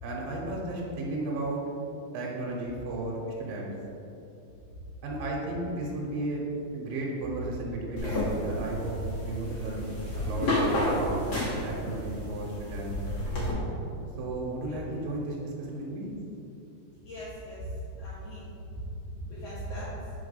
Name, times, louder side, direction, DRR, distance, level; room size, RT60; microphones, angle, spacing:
voice 1, 0.0-1.6 2.1-3.7 5.0-6.5 6.7-10.5 10.9-11.2 11.6-12.9 14.2-16.1, right 2 dB, 75° right, -3 dB, 2.5 m, -34 dB
sound 1, 8.0-13.5, left 1 dB, 55° left, 1.0 m, -30 dB
voice 2, 17.0-18.5 18.9-20.1, equal, 85° left, -9 dB, 1.4 m, -39 dB
4.7 x 4.5 x 5.2 m, 2.8 s
omnidirectional pair, 4.3 m